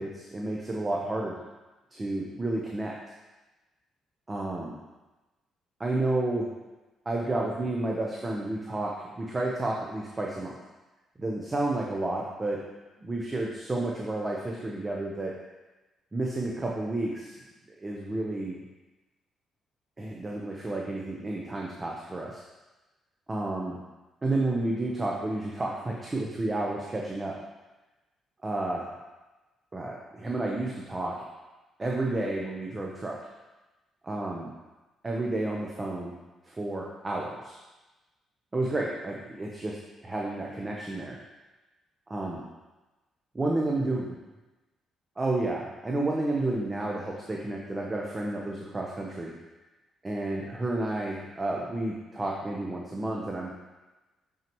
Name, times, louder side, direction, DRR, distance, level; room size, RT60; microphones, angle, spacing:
voice 1, 0.0-1.4 1.9-2.9 4.3-4.8 5.8-6.5 7.1-10.5 11.2-12.6 13.0-15.3 16.1-17.4 17.8-18.6 20.0-22.4 23.3-23.8 24.2-27.4 28.4-28.9 29.7-31.1 31.8-33.2 34.0-34.5 35.0-36.2 36.4-37.6 38.5-39.8 40.0-41.2 42.1-42.4 43.3-44.1 45.2-49.3 50.0-53.5, right 2 dB, 25° right, -2 dB, 0.8 m, -31 dB
6.8 x 5.9 x 3.0 m, 1.1 s
cardioid pair, 90°, 0 cm